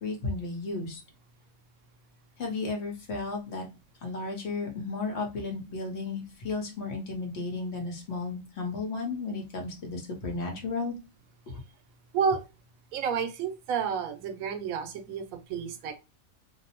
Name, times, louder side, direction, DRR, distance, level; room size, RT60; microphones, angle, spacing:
voice 1, 0.0-1.0 2.4-3.6 4.0-11.0 11.5-11.6, left 3 dB, 55° left, 2 dB, 1.0 m, -34 dB
voice 2, 12.9-15.9, right 6 dB, 90° right, 6 dB, 1.0 m, -30 dB
2.7 x 2.0 x 2.7 m, 0.28 s
omnidirectional pair, 1.4 m